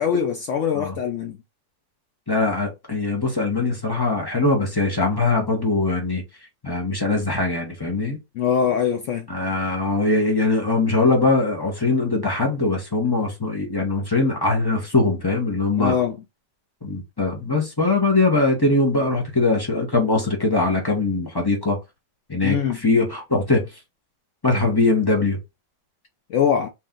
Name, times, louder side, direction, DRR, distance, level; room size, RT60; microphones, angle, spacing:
voice 1, 0.0-1.4 8.3-9.3 15.8-16.2 22.4-22.8 26.3-26.7, left 8 dB, 80° left, 0.6 m, -22 dB
voice 2, 2.3-6.2 6.6-8.2 9.3-16.0 16.8-21.8 22.3-23.7 24.4-25.4, left 3 dB, 20° left, 0.7 m, -21 dB
3.1 x 2.9 x 3.7 m
omnidirectional pair, 1.9 m